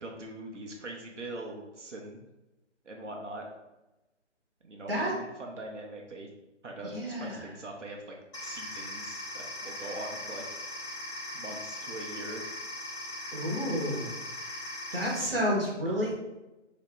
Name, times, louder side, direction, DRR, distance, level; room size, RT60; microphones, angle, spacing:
voice 1, 0.0-2.2 2.8-3.4 4.6-6.3 6.6-6.9 7.2-8.1 8.4-10.4 11.3-12.4, right 2 dB, 75° right, 0 dB, 0.7 m, -42 dB
voice 2, 6.9-7.4 13.3-14.1 14.9-16.1, equal, 50° right, -3 dB, 1.0 m, -30 dB
sound 1, 8.3-15.2, left 1 dB, 25° left, 0.9 m, -39 dB
2.9 x 2.8 x 3.4 m, 1.0 s
figure-of-eight pair, 150°, 37 cm